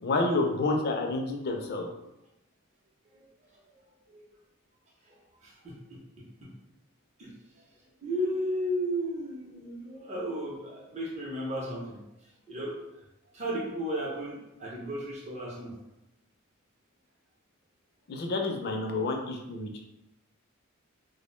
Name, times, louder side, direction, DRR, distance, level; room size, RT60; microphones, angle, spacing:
voice 1, 0.0-1.9 18.1-19.8, left 2 dB, 50° left, 2 dB, 0.4 m, -29 dB
voice 2, 5.4-5.7 7.2-7.3 8.0-12.0 12.5-12.7 13.3-15.7, equal, 30° right, -5 dB, 0.6 m, -34 dB
2.5 x 2.0 x 3.0 m, 0.90 s
head